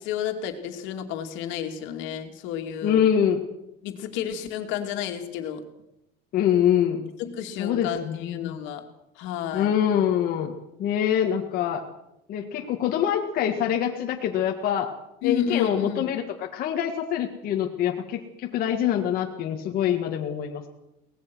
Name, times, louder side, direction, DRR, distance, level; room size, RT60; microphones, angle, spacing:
voice 1, 0.0-3.0 3.8-5.6 7.2-8.8 9.2-9.7 15.2-16.1, left 9 dB, 70° left, 5 dB, 2.6 m, -31 dB
voice 2, 2.8-3.4 6.3-7.1 7.6-8.6 9.5-10.5 10.8-11.8 12.3-14.9 15.2-16.2 16.5-20.7, left 9 dB, 45° left, 1 dB, 1.8 m, -24 dB
23.0 x 19.0 x 6.2 m, 0.86 s
cardioid pair, 160°, 20 cm